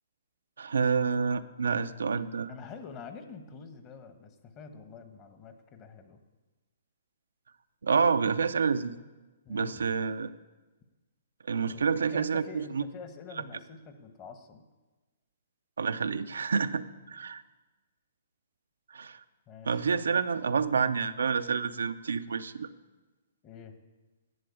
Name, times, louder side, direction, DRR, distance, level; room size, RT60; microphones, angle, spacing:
voice 1, 0.6-2.5 7.8-9.0 9.5-10.3 11.5-12.8 15.8-17.4 18.9-19.2 19.6-22.7, right 5 dB, 90° right, 10 dB, 0.6 m, -28 dB
voice 2, 2.5-6.2 9.4-9.9 11.6-14.6 19.5-19.9 23.4-23.7, left 5 dB, 30° left, 8 dB, 1.3 m, -46 dB
11.0 x 7.7 x 8.6 m, 1.2 s
hypercardioid pair, 145°, 0 cm